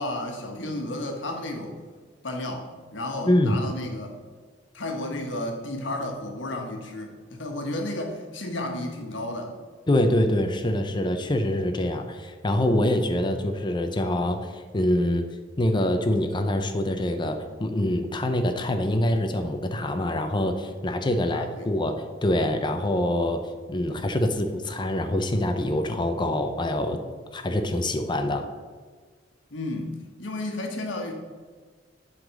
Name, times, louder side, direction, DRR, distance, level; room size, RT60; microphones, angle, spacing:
voice 1, 0.0-1.7 2.2-4.1 4.7-9.5 21.1-21.7 29.5-31.1, left 1 dB, 85° left, 3 dB, 1.3 m, -32 dB
voice 2, 3.3-3.6 9.9-15.3 15.6-23.4 23.7-27.0 27.3-28.5, left 1 dB, 25° left, 6 dB, 0.6 m, -25 dB
7.7 x 4.0 x 6.3 m, 1.5 s
head